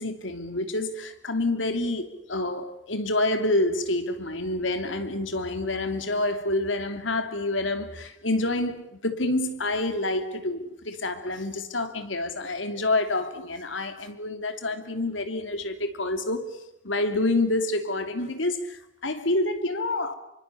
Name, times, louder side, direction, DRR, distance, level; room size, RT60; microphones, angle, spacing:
voice 1, 0.0-16.6 16.8-20.1, left 2 dB, 85° left, 3.1 m, -28 dB
27.0 x 24.5 x 7.2 m
head